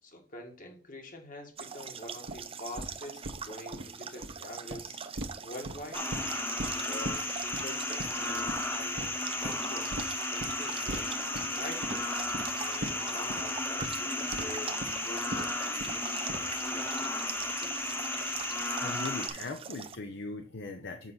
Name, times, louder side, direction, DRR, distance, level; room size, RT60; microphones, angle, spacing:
voice 1, 0.0-5.1 5.4-6.0 6.7-10.0 10.3-11.1 11.6-12.1 12.5-17.7, left 1 dB, 45° left, 3 dB, 2.0 m, -46 dB
sound 1, 1.6-20.0, right 6 dB, 30° right, 0.6 m, -43 dB
sound 2, 2.3-2.4 2.8-2.9 3.2-3.4 3.7-3.8 4.1-4.3 4.7-4.8 5.2-5.3 5.6-6.3 6.6-6.7 7.0-7.2 7.5-7.6 8.0-8.2 8.5-8.6 9.0-9.1 9.4-9.6 9.9-10.0 10.4-10.5 10.9-11.0 11.3-11.5 11.8-12.0 12.3-12.4 12.8-12.9 13.3-13.4 13.8-13.9 14.3-14.4 14.8-14.9 15.3-15.4 15.8-16.0 16.3-16.6, right 1 dB, 60° right, 1.3 m, -37 dB
sound 3, 5.9-19.3, left 2 dB, 10° left, 1.1 m, -34 dB
voice 2, 18.8-21.1, left 3 dB, 60° left, 5 dB, 0.8 m, -39 dB
7.3 x 5.7 x 4.0 m, 0.40 s
head